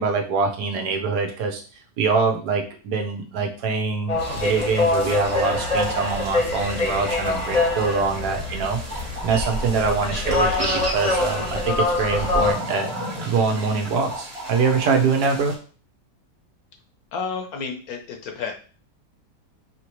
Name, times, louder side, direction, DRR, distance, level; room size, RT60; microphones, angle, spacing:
voice 1, 0.0-1.6 2.0-12.9 13.2-15.6, right 4 dB, 75° right, 3 dB, 1.3 m, -24 dB
sound 1, 4.1-12.5, left 2 dB, 30° left, 0.8 m, -24 dB
sound 2, 4.2-15.5, right 1 dB, 40° right, 1.3 m, -34 dB
voice 2, 17.1-18.5, left 5 dB, 65° left, 3 dB, 1.1 m, -31 dB
4.9 x 2.9 x 3.0 m, 0.39 s
omnidirectional pair, 1.8 m